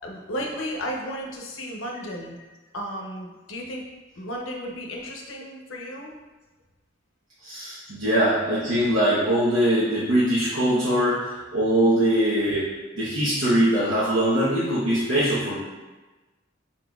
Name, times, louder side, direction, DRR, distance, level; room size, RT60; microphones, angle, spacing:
voice 1, 0.0-2.4 2.7-3.9 4.2-6.1 7.9-8.0 11.8-12.0, equal, 85° left, 0 dB, 0.7 m, -34 dB
voice 2, 7.4-15.6, right 1 dB, 80° right, -10 dB, 0.9 m, -22 dB
4.4 x 4.0 x 2.3 m, 1.2 s
head